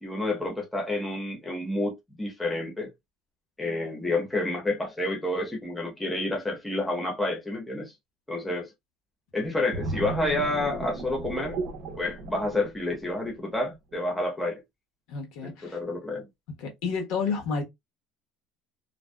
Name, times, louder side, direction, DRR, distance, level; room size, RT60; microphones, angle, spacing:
voice 1, 0.0-2.9 3.6-7.9 8.3-8.7 9.3-11.6 12.0-14.6 15.4-16.3, left 2 dB, 5° left, 0.8 m, -29 dB
sound 1, 9.7-13.3 13.7-13.9, right 3 dB, 55° right, 0.6 m, -35 dB
voice 2, 15.1-15.8 16.6-17.6, left 5 dB, 70° left, 1.0 m, -30 dB
2.5 x 2.1 x 2.2 m
cardioid pair, 150°, 0 cm